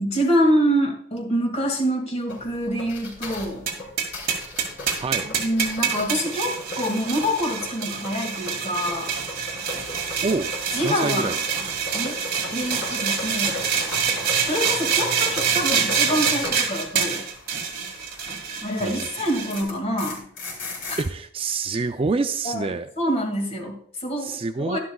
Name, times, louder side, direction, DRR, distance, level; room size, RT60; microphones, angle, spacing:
voice 1, 0.0-3.6 5.2-9.2 10.7-11.3 11.9-12.2 12.5-13.6 14.4-17.2 18.6-20.2 20.9-21.0 22.4-24.8, equal, 35° left, 1 dB, 2.1 m, -26 dB
sound 1, 2.3-18.9 19.2-21.0, left 2 dB, 65° left, 3.6 m, -37 dB
sound 2, 3.7-19.6, right 7 dB, 50° right, 1.8 m, -26 dB
voice 2, 5.0-5.3 10.2-10.5 10.8-11.4 18.8-19.1 21.0-22.9 24.2-24.8, right 3 dB, 30° right, 8 dB, 0.4 m, -26 dB
11.5 x 11.5 x 2.3 m, 0.63 s
head